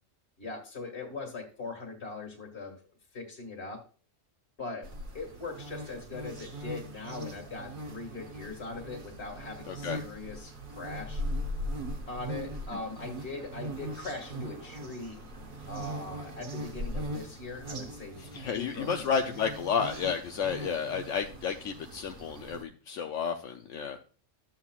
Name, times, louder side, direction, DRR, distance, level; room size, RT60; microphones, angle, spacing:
voice 1, 0.4-2.8 3.1-3.8 4.6-4.9 5.1-11.2 12.1-15.2 15.7-18.2 18.5-19.1, left 3 dB, 55° left, 1 dB, 2.2 m, -40 dB
sound 1, 4.8-22.6, right 1 dB, 45° right, 1.2 m, -40 dB
voice 2, 9.7-10.0 18.2-24.0, left 6 dB, 75° left, 5 dB, 1.0 m, -32 dB
13.0 x 7.4 x 2.4 m, 0.40 s
omnidirectional pair, 1.3 m